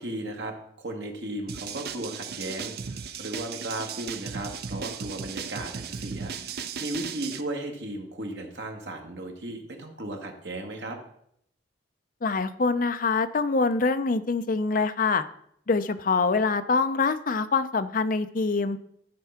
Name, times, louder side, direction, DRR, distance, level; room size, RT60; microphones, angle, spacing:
voice 1, 0.0-11.0, right 1 dB, 75° right, 2 dB, 1.8 m, -36 dB
sound 1, 1.5-7.4, right 6 dB, 60° right, 0.6 m, -36 dB
voice 2, 12.2-15.2 15.7-18.8, left 4 dB, 50° left, 11 dB, 0.6 m, -25 dB
11.5 x 4.7 x 5.7 m, 0.71 s
head